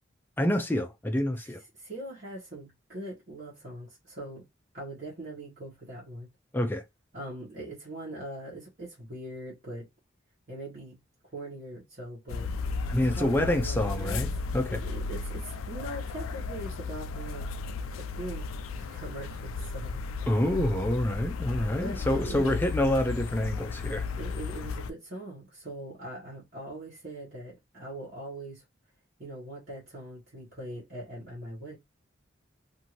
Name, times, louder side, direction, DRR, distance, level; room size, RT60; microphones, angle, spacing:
voice 1, 0.4-1.6 6.5-6.8 12.9-14.8 20.3-24.1, left 1 dB, 10° left, 0.4 m, -27 dB
voice 2, 1.8-4.4 4.7-6.3 7.1-9.9 10.5-11.0 11.3-12.5 13.1-14.3 14.7-17.5 17.9-18.4 18.7-20.0 21.8-22.5 24.2-28.6 29.2-31.8, right 1 dB, 45° right, 1.2 m, -41 dB
sound 1, 12.3-24.9, left 4 dB, 90° left, 0.3 m, -34 dB
2.7 x 2.6 x 3.0 m
head